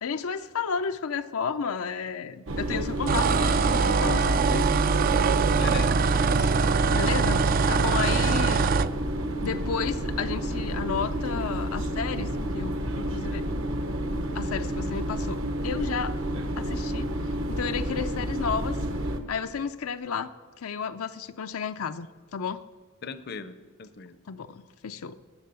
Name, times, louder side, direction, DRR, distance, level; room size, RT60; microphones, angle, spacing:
voice 1, 0.0-4.7 6.9-8.7 9.4-13.5 14.3-16.2 16.6-18.8 19.3-20.3 20.6-22.6 24.3-25.2, left 6 dB, 90° left, 9 dB, 0.5 m, -32 dB
sound 1, 2.5-19.2, equal, 65° right, 1.0 m, -30 dB
sound 2, 3.1-8.9, right 5 dB, 40° right, 0.3 m, -23 dB
voice 2, 5.5-6.5 8.0-8.6 23.0-24.2, left 5 dB, 50° left, 13 dB, 0.6 m, -40 dB
19.5 x 7.4 x 6.9 m, 1.4 s
head